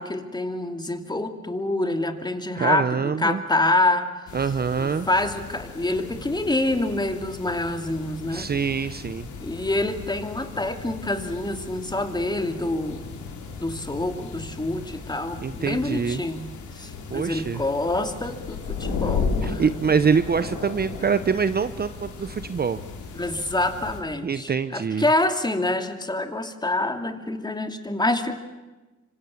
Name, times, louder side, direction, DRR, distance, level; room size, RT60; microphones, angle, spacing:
voice 1, 0.0-4.3 4.8-8.5 9.4-13.0 13.6-16.5 16.8-20.0 23.1-28.3, left 2 dB, 15° left, 7 dB, 2.8 m, -26 dB
voice 2, 2.6-3.4 4.3-5.1 8.3-9.3 15.4-16.2 17.1-17.6 19.4-22.8 24.2-25.1, right 6 dB, 30° right, 12 dB, 0.9 m, -25 dB
sound 1, 4.3-24.0, left 5 dB, 75° left, 4.8 m, -35 dB
26.0 x 25.5 x 7.4 m, 1.2 s
cardioid pair, 90°, 30 cm